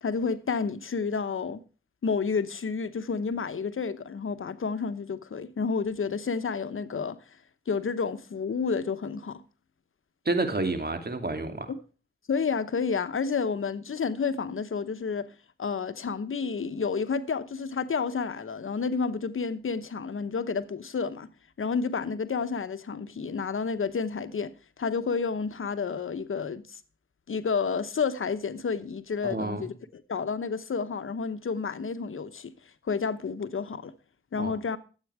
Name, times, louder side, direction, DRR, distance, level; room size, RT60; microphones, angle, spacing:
voice 1, 0.0-1.6 2.0-7.2 7.7-9.4 11.7-11.8 12.3-15.3 15.6-21.3 21.6-24.5 24.8-26.8 27.3-32.5 32.8-33.9 34.3-34.8, left 5 dB, 85° left, 0.9 m, -30 dB
voice 2, 10.2-11.7 29.2-29.6 34.4-34.6, right 2 dB, 50° right, 2.5 m, -29 dB
13.0 x 8.3 x 4.8 m
cardioid pair, 40°, 21 cm